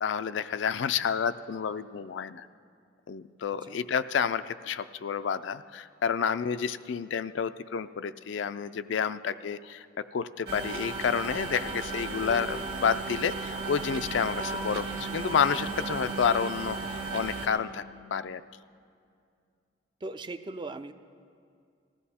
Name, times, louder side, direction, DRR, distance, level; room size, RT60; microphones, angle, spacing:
voice 1, 0.0-2.5 3.1-17.8 18.1-18.4, left 7 dB, 70° left, 12 dB, 0.4 m, -30 dB
sound 1, 10.5-17.5, right 3 dB, 55° right, 1.6 m, -35 dB
voice 2, 20.0-20.9, right 2 dB, 25° right, 10 dB, 0.4 m, -38 dB
19.0 x 14.0 x 4.2 m, 2.3 s
head